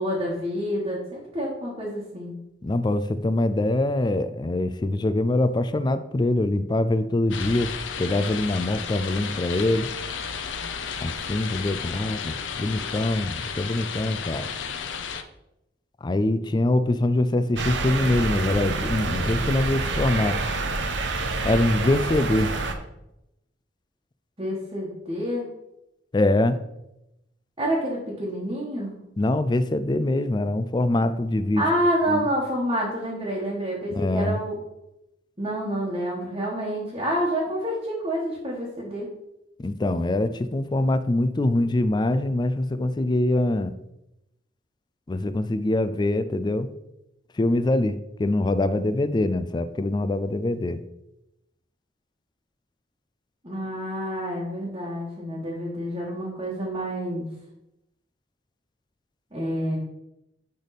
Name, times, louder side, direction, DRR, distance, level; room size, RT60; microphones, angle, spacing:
voice 1, 0.0-2.4 24.4-25.5 27.6-28.9 31.6-34.5 35.4-39.1 53.4-57.3 59.3-59.8, equal, 25° right, -5 dB, 1.3 m, -28 dB
voice 2, 2.6-7.7 8.0-9.9 11.0-14.5 16.0-20.4 21.4-22.5 26.1-26.6 29.2-31.7 32.1-32.2 33.9-34.4 39.6-43.7 45.1-46.7 47.4-50.8, left 1 dB, 25° left, 12 dB, 0.3 m, -24 dB
sound 1, 7.3-15.2, left 6 dB, 75° left, 0.6 m, -33 dB
sound 2, 17.6-22.7, right 3 dB, 70° right, 0.8 m, -27 dB
10.5 x 3.5 x 4.1 m, 0.88 s
head